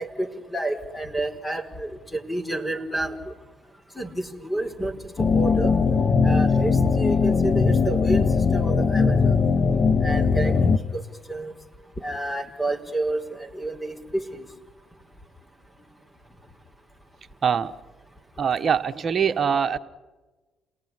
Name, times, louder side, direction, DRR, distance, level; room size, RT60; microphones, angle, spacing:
voice 1, 0.0-3.3 4.0-5.0 5.3-5.7 6.2-8.3 8.5-9.4 10.0-10.5 10.9-11.0 11.3-11.5 12.0-14.5, right 2 dB, 10° left, 5 dB, 4.5 m, -29 dB
sound 1, 5.2-10.8, left 5 dB, 45° left, 1.6 m, -20 dB
voice 2, 17.4-17.7 18.4-19.8, right 7 dB, 45° right, 9 dB, 1.4 m, -23 dB
29.0 x 19.0 x 9.9 m, 1.2 s
hypercardioid pair, 55°, 0 cm